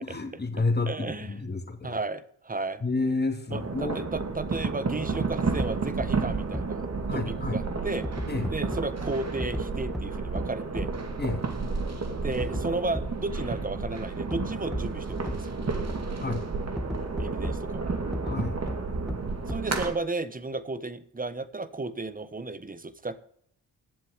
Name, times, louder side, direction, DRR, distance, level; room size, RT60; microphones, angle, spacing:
voice 1, 0.0-2.0 2.8-4.0 7.1-7.6 8.3-8.5 11.2-11.4 15.6-15.8 16.2-16.5 18.2-18.6, left 3 dB, 20° left, 3 dB, 2.6 m, -30 dB
voice 2, 0.9-1.4 1.8-2.8 3.5-6.9 7.1-8.1 8.5-10.9 12.2-15.6 17.2-17.9 19.5-23.2, right 3 dB, 20° right, 14 dB, 1.3 m, -34 dB
sound 1, 3.5-19.9, right 4 dB, 35° right, 2.3 m, -31 dB
sound 2, 5.6-5.7 6.0-6.1 6.5-6.6 8.0-8.8 9.4-9.6 9.9-10.0 10.4-10.5 10.8-10.9 12.4-12.6 12.9-13.0 14.3-14.4 14.7-14.8 15.3-15.4 16.8-17.5 18.1-18.4 18.7-18.8 19.1-19.2 19.5-19.6, equal, ahead, 1.8 m, -32 dB
11.5 x 7.5 x 8.1 m, 0.64 s
supercardioid pair, 60°, 44 cm